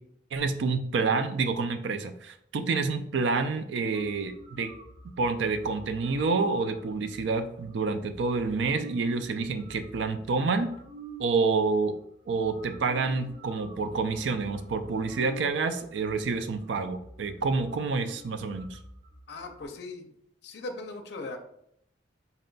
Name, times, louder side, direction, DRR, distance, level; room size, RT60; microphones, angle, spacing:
voice 1, 0.3-4.7 5.2-10.7 11.2-11.9 12.3-18.8, right 4 dB, 70° right, 9 dB, 0.4 m, -28 dB
sound 1, 3.9-11.3 12.0-12.1 12.3-19.7, right 2 dB, 40° right, 1.0 m, -48 dB
voice 2, 19.3-20.1 20.4-21.4, left 2 dB, 65° left, 5 dB, 0.5 m, -39 dB
4.2 x 2.2 x 3.8 m, 0.73 s
head